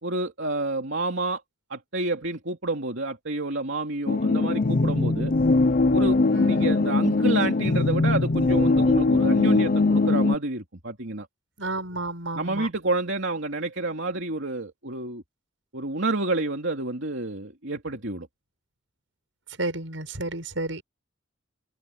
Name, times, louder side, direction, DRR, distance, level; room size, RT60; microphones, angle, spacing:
voice 1, 0.0-1.4 1.7-5.3 5.9-11.3 12.3-15.2 15.7-18.3, right 2 dB, 70° right, 3.0 m, -29 dB
sound 1, 4.1-10.3, left 3 dB, 50° left, 0.7 m, -21 dB
voice 2, 6.3-6.8 11.6-12.7 19.6-20.8, right 2 dB, 85° right, 6.7 m, -31 dB
head